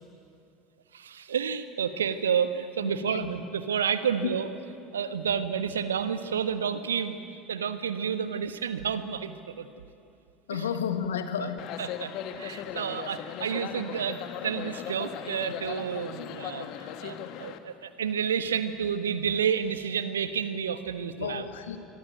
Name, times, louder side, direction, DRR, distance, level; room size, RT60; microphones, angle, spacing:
voice 1, 0.9-4.5 4.9-7.2 7.5-9.7 10.5-10.7 11.4-11.5 11.8-21.4, right 7 dB, 75° right, 11 dB, 1.3 m, -30 dB
voice 2, 2.8-3.3 4.2-4.4 10.5-11.6 21.2-21.8, left 7 dB, 70° left, 8 dB, 1.8 m, -32 dB
sound 1, 11.6-17.6, left 10 dB, 50° left, 1.6 m, -38 dB
26.0 x 23.5 x 9.3 m, 2.5 s
figure-of-eight pair, 70°, 0 cm